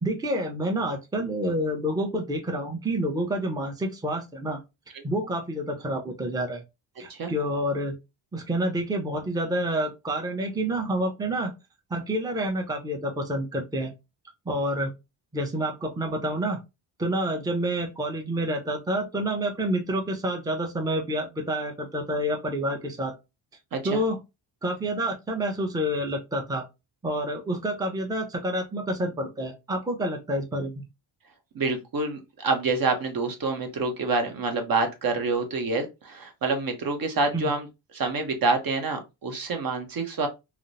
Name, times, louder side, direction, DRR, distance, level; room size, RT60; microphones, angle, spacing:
voice 1, 0.0-4.6 5.0-6.6 7.0-7.9 8.3-11.5 11.9-13.9 14.5-14.9 15.3-16.6 17.0-23.1 23.8-24.2 24.6-26.6 27.0-30.8 37.3-37.5, right 1 dB, 10° right, 2 dB, 0.6 m, -28 dB
voice 2, 23.7-24.0 31.5-40.3, right 3 dB, 50° right, 5 dB, 0.8 m, -27 dB
2.9 x 2.0 x 2.5 m, 0.24 s
cardioid pair, 80°, 45 cm